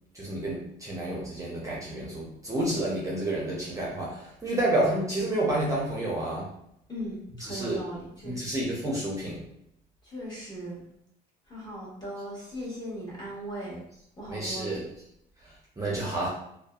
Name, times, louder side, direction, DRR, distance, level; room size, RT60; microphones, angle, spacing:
voice 1, 0.1-6.5 7.4-7.8 8.2-9.5 14.3-14.8 15.8-16.3, right 1 dB, 20° right, -5 dB, 0.5 m, -29 dB
voice 2, 6.9-8.5 10.0-10.8 11.5-13.9 14.2-14.7, right 1 dB, 25° left, -6 dB, 1.2 m, -38 dB
2.5 x 2.2 x 2.3 m, 0.77 s
cardioid pair, 110°, 17 cm